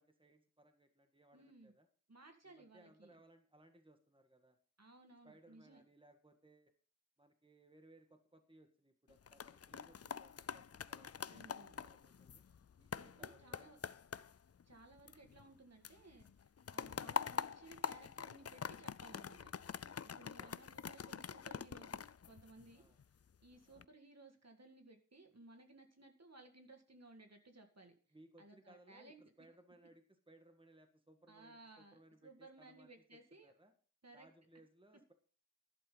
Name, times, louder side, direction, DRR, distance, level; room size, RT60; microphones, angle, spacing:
voice 1, 0.0-1.9 2.4-4.6 5.2-6.7 7.2-12.4 12.8-13.7 16.8-17.0 20.2-20.5 22.7-23.0 23.6-23.9 28.1-33.7 34.1-35.1, right 1 dB, 15° right, 6 dB, 1.7 m, -65 dB
voice 2, 1.3-1.7 2.1-3.1 4.8-5.8 11.3-11.8 13.0-13.8 14.6-19.5 20.0-22.8 23.4-27.9 28.4-29.2 31.3-33.5 34.0-34.3, right 2 dB, 55° right, 4 dB, 2.0 m, -60 dB
sound 1, 9.1-15.6 15.8-23.0 23.5-23.8, left 7 dB, 50° left, 0.5 m, -45 dB
12.0 x 11.0 x 3.9 m, 0.42 s
wide cardioid pair, 55°, 31 cm